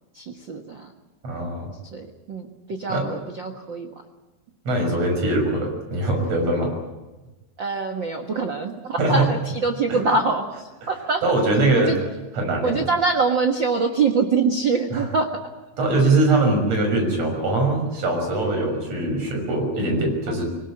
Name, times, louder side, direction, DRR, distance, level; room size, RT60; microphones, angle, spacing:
voice 1, 0.1-0.9 1.9-3.9 7.6-11.4 11.7-12.0 12.6-15.3 20.3-20.4, right 4 dB, 75° right, 4 dB, 1.0 m, -24 dB
voice 2, 1.2-1.7 2.9-3.1 4.7-6.7 9.0-9.3 11.2-12.0 12.3-12.8 14.9-15.0 15.8-20.4, right 2 dB, 40° right, 2 dB, 7.0 m, -22 dB
25.5 x 18.5 x 8.9 m, 1.1 s
omnidirectional pair, 4.7 m